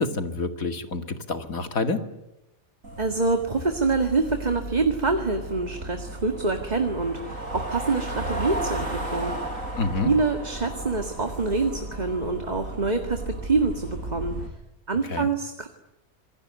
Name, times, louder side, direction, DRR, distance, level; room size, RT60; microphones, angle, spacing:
voice 1, 0.0-2.0 9.8-10.1 15.0-15.3, left 3 dB, 85° left, 7 dB, 2.6 m, -28 dB
sound 1, 2.8-14.5, right 1 dB, 75° right, 6.3 m, -34 dB
voice 2, 3.0-9.4 10.0-14.4 14.9-15.7, right 3 dB, 30° right, 5 dB, 2.1 m, -26 dB
27.0 x 23.0 x 9.5 m, 0.89 s
omnidirectional pair, 1.4 m